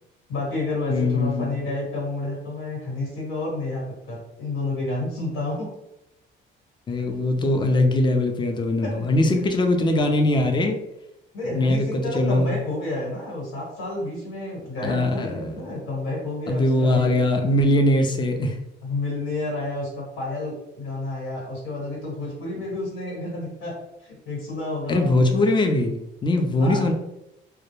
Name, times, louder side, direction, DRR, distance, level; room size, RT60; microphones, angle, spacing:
voice 1, 0.3-5.7 7.1-7.8 8.8-9.1 9.4-9.5 11.3-17.1 18.8-25.5 26.6-26.9, left 2 dB, 90° left, -4 dB, 1.5 m, -30 dB
voice 2, 0.9-1.6 6.9-10.8 11.4-12.5 14.8-15.6 16.5-18.6 24.9-26.9, left 1 dB, 25° left, 5 dB, 0.4 m, -21 dB
2.3 x 2.0 x 3.1 m, 0.85 s
cardioid pair, 90°, 20 cm